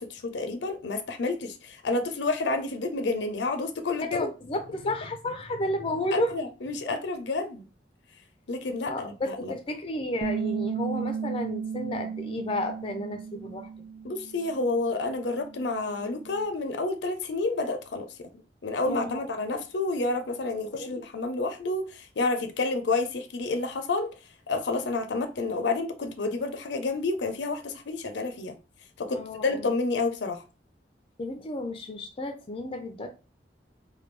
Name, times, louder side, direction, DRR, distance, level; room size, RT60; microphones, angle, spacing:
voice 1, 0.0-4.3 6.1-7.7 8.5-9.6 14.0-18.3 18.6-24.1 24.5-28.6 29.0-30.4, left 3 dB, 80° left, 0.5 m, -29 dB
voice 2, 4.1-6.4 8.9-13.7 18.8-19.2 20.7-21.0 29.1-29.7 31.2-33.1, left 1 dB, 30° left, 0.4 m, -32 dB
Bass guitar, 10.2-16.4, right 6 dB, 70° right, 0.3 m, -35 dB
3.3 x 2.2 x 3.2 m
head